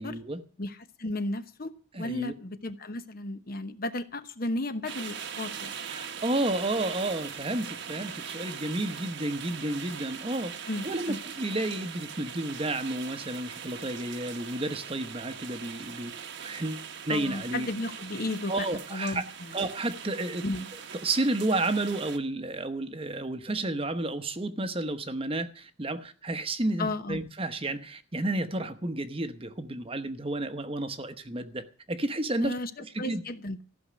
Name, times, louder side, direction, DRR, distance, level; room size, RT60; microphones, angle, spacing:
voice 1, 0.0-0.4 1.9-2.3 5.9-16.1 16.4-17.7 18.5-19.2 19.5-20.4 21.0-32.5 32.9-33.2, right 2 dB, 25° right, 1.0 m, -31 dB
voice 2, 0.6-1.7 2.0-5.8 10.7-11.2 17.1-18.7 18.9-19.5 20.4-20.7 26.8-27.2 32.4-33.6, left 2 dB, 45° left, 0.9 m, -34 dB
sound 1, 4.9-22.2, right 7 dB, 55° right, 1.2 m, -41 dB
14.5 x 6.4 x 9.6 m
head